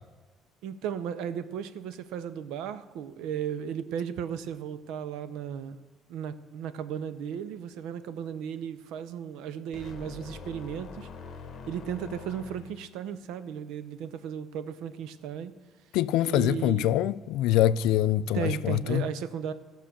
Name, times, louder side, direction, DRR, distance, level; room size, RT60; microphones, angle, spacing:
voice 1, 0.6-5.8 6.1-11.1 11.7-15.5 16.2-17.0 18.3-19.5, right 8 dB, 85° right, 0.6 m, -35 dB
sound 1, 9.7-13.0, left 4 dB, 50° left, 1.0 m, -44 dB
voice 2, 15.9-19.1, left 12 dB, 85° left, 0.3 m, -24 dB
15.0 x 6.2 x 6.8 m
cardioid pair, 115°, 0 cm